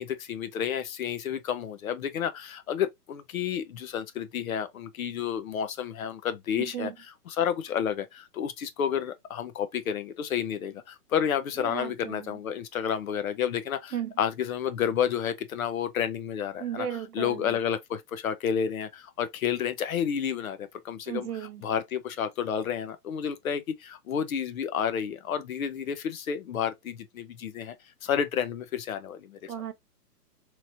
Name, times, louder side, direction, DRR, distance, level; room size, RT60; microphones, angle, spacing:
voice 1, 0.0-6.9 7.3-16.9 17.1-21.3 21.6-27.7 28.0-29.5, left 8 dB, 60° left, 0.7 m, -30 dB
voice 2, 6.6-6.9 11.6-12.4 13.9-14.1 16.6-17.6 21.1-21.6 29.5-29.7, right 9 dB, 70° right, 0.9 m, -35 dB
3.1 x 2.9 x 2.6 m
hypercardioid pair, 160°, 47 cm